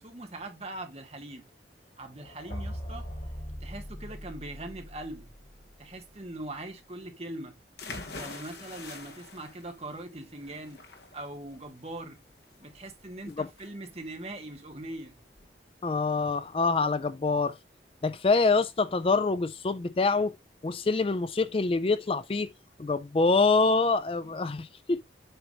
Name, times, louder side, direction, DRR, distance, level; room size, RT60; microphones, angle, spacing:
voice 1, 0.0-1.4 2.0-3.1 3.6-5.3 5.8-7.5 8.1-10.9 11.1-12.2 12.6-15.1 24.3-24.4, right 1 dB, 35° right, 1.4 m, -41 dB
sound 1, 2.1-6.1, equal, 50° left, 2.0 m, -41 dB
sound 2, 7.8-15.5, left 3 dB, 65° left, 1.3 m, -45 dB
voice 2, 15.8-17.6 18.0-20.3 20.6-22.5 22.8-25.0, left 3 dB, 30° left, 0.4 m, -25 dB
8.0 x 2.9 x 5.2 m
head